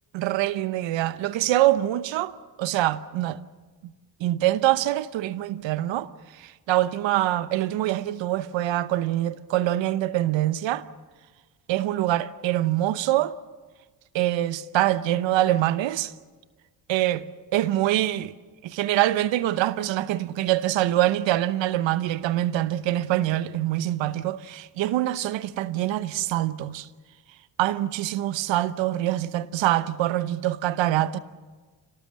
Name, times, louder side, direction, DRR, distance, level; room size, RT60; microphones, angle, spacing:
voice 1, 0.1-3.4 4.2-6.1 6.4-10.8 11.7-13.3 14.1-16.1 16.9-17.2 17.5-18.3 18.6-26.9 27.6-31.2, right 14 dB, 75° right, 0.9 m, -24 dB
26.0 x 18.5 x 7.5 m
supercardioid pair, 50°, 45 cm